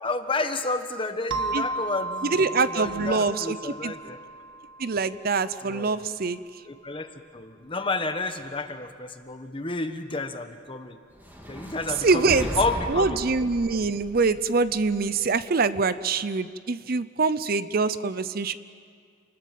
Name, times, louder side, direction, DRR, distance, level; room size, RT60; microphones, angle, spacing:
voice 1, 0.0-4.2 5.6-6.0 6.7-11.0 11.5-13.2, left 3 dB, 25° left, 8 dB, 1.3 m, -31 dB
sound 1, 1.3-5.7, right 2 dB, 90° right, 1.6 m, -34 dB
voice 2, 2.4-3.9 4.8-6.4 12.0-12.5 12.9-18.5, right 4 dB, 50° right, 14 dB, 0.6 m, -24 dB
sound 2, 11.1-15.4, equal, 10° right, 2.4 m, -37 dB
28.0 x 20.5 x 7.6 m, 2.1 s
head